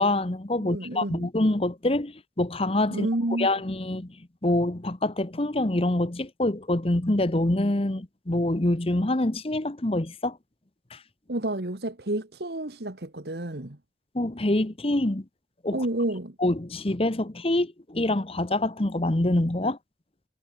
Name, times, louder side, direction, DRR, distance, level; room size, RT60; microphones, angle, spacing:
voice 1, 0.0-3.1 3.4-4.2 4.4-10.4 10.9-11.0 14.1-15.2 15.6-15.8 16.4-19.8, left 1 dB, 35° left, 1.1 m, -25 dB
voice 2, 0.6-1.3 2.9-3.5 11.3-13.8 15.7-16.4, right 1 dB, 65° right, 1.9 m, -30 dB
head